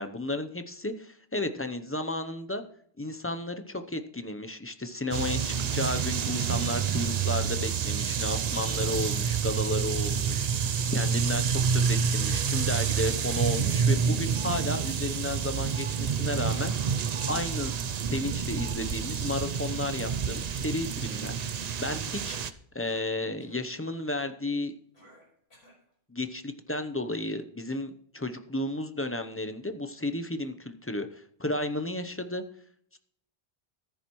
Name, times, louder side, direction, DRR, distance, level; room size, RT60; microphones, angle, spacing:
voice 1, 0.0-2.6 3.0-16.9 17.2-17.7 18.0-22.4 22.7-24.7 26.1-32.4 32.9-33.0, left 2 dB, 15° left, 8 dB, 0.6 m, -33 dB
sound 1, 5.1-22.5, right 6 dB, 50° right, 0.6 m, -28 dB
sound 2, 14.3-14.7 15.7-16.1 17.2-17.6 18.6-18.9, right 4 dB, 75° right, 0.9 m, -46 dB
Cough, 21.3-22.4 22.8-23.1 23.4-23.7 24.9-25.8, left 1 dB, 80° left, 5.1 m, -55 dB
14.5 x 10.5 x 3.1 m, 0.64 s
omnidirectional pair, 1.1 m